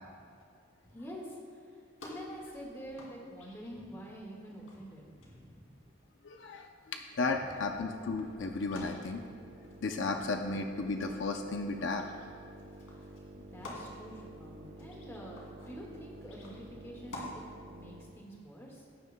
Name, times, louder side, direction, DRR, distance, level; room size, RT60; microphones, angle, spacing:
voice 1, 0.8-5.8 7.2-7.6 10.1-10.4 12.9-18.8, equal, 10° left, -2 dB, 1.6 m, -47 dB
sound 1, 2.0-17.3, left 2 dB, 85° left, 2.6 m, -53 dB
voice 2, 6.2-9.2 9.8-12.0, left 3 dB, 65° left, 4 dB, 0.5 m, -34 dB
sound 2, 7.1-18.3, right 2 dB, 65° right, 0.7 m, -51 dB
17.5 x 9.5 x 2.2 m, 2.4 s
head